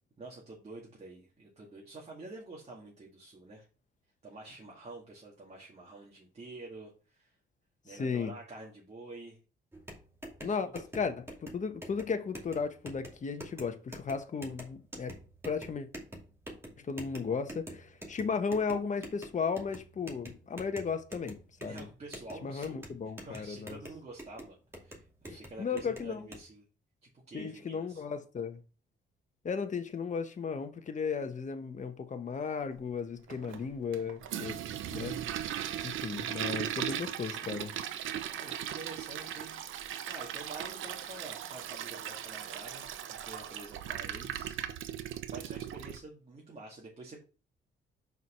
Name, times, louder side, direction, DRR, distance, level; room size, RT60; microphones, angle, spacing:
voice 1, 0.2-3.7 4.2-7.4 7.8-9.4 10.4-10.6 21.6-22.9 23.2-26.6 27.0-28.0 38.2-44.6 44.9-47.2, right 2 dB, 35° right, 2.2 m, -48 dB
voice 2, 8.0-8.3 10.4-15.2 15.4-15.9 16.8-21.9 22.4-23.8 25.3-26.2 27.3-28.6 29.4-34.6 34.9-35.5 35.8-37.7, left 5 dB, 40° left, 1.2 m, -35 dB
sound 1, 9.7-26.4, right 1 dB, 10° right, 2.4 m, -48 dB
Toilet flush, 33.3-46.0, right 10 dB, 80° right, 0.7 m, -38 dB
5.5 x 4.7 x 5.6 m
cardioid pair, 90°, 20 cm